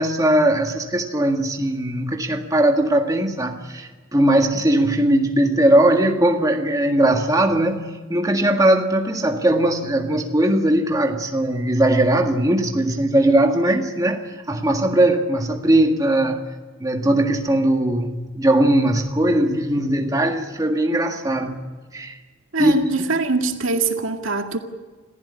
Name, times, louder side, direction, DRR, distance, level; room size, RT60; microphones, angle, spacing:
voice 1, 0.0-16.4 16.8-21.6 21.9-22.1 22.6-22.8, right 1 dB, 15° right, 1.8 m, -19 dB
voice 2, 22.5-24.6, right 3 dB, 75° right, 2.1 m, -23 dB
27.5 x 15.5 x 9.8 m
head